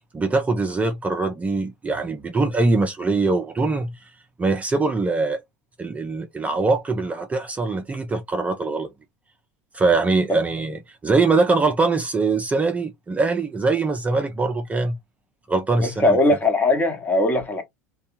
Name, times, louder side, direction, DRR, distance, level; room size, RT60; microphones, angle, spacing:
voice 1, 0.1-4.1 4.4-5.4 5.8-8.9 9.7-15.0 15.5-16.2, right 3 dB, 15° right, 0.5 m, -22 dB
voice 2, 15.8-17.6, left 2 dB, 20° left, 1.0 m, -20 dB
2.7 x 2.3 x 2.5 m
hypercardioid pair, 85°, 8 cm